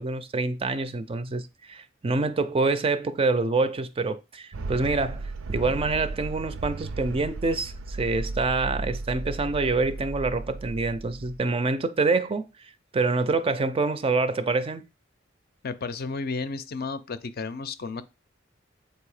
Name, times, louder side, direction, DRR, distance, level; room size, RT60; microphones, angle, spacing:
voice 1, 0.0-12.5 12.9-14.8, right 3 dB, 30° right, 0.4 m, -26 dB
sound 1, 4.5-11.4, right 2 dB, 85° right, 0.5 m, -35 dB
voice 2, 15.6-18.0, left 4 dB, 50° left, 0.5 m, -32 dB
7.6 x 2.8 x 4.8 m
head